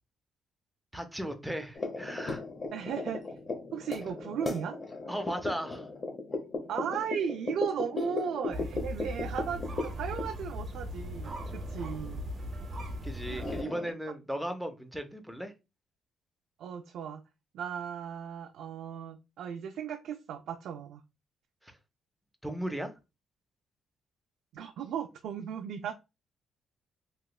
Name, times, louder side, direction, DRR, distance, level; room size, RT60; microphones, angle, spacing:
voice 1, 0.9-2.4 5.1-5.9 13.0-15.5 21.6-21.8 22.4-22.9, equal, ahead, 0.5 m, -36 dB
sound 1, 1.7-13.0 13.3-13.9, left 3 dB, 35° left, 0.7 m, -37 dB
voice 2, 2.7-3.3 3.7-4.8 6.7-12.2 13.3-13.5 16.6-17.2 17.5-21.0 24.5-25.9, right 8 dB, 75° right, 0.3 m, -36 dB
sound 2, 8.5-13.6, equal, 40° right, 0.7 m, -38 dB
3.1 x 2.9 x 2.3 m
cardioid pair, 145°, 0 cm